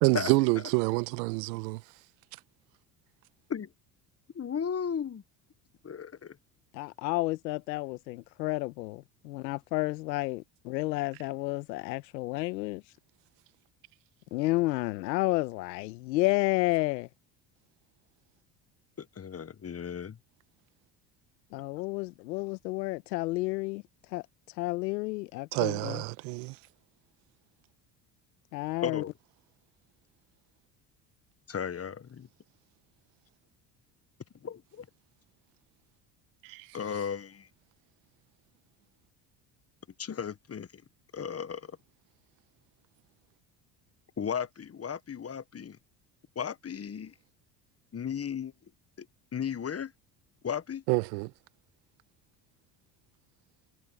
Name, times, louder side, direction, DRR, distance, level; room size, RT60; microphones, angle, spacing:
voice 1, 0.0-1.8 25.5-26.6 36.4-36.7 50.9-51.3, right 25 dB, 80° right, 1.4 m, -27 dB
voice 2, 4.3-5.2 5.8-6.1 19.2-20.2 28.8-29.1 31.5-32.3 34.4-34.8 36.7-37.4 40.0-40.7 41.1-41.6 44.2-45.8 46.4-47.1 47.9-48.5 49.3-49.9 50.4-50.8, left 7 dB, 30° left, 1.2 m, -35 dB
voice 3, 6.7-12.8 14.3-17.1 21.5-23.8 24.1-24.2 24.6-26.0 28.5-29.0, left 20 dB, 85° left, 1.3 m, -31 dB
hypercardioid pair, 70°, 49 cm